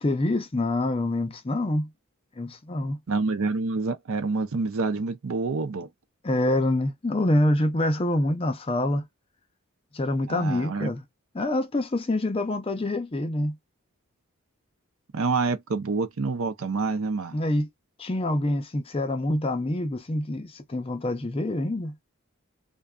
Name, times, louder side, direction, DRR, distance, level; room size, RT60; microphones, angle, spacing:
voice 1, 0.0-1.9 2.4-3.0 6.2-9.1 9.9-11.0 11.3-13.6 17.3-17.7 18.0-21.9, left 1 dB, 25° left, 0.4 m, -26 dB
voice 2, 3.1-5.9 10.3-10.9 15.1-17.3, right 4 dB, 70° right, 0.5 m, -27 dB
2.5 x 2.3 x 2.2 m
head